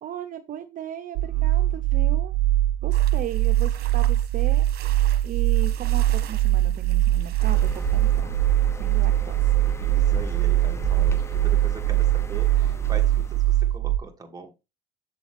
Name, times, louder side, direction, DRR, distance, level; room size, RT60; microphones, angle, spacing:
voice 1, 0.0-2.3 2.8-8.3 8.8-9.6, right 9 dB, 55° right, 7 dB, 0.8 m, -37 dB
voice 2, 1.2-1.8 9.7-14.5, right 4 dB, 20° right, 2 dB, 2.3 m, -41 dB
sound 1, 1.2-14.0, right 13 dB, 85° right, 0.5 m, -22 dB
sound 2, 2.9-8.2, right 11 dB, 70° right, 1.3 m, -45 dB
sound 3, 7.4-13.7, left 2 dB, 15° left, 1.0 m, -36 dB
7.3 x 6.9 x 3.4 m, 0.26 s
cardioid pair, 110°, 17 cm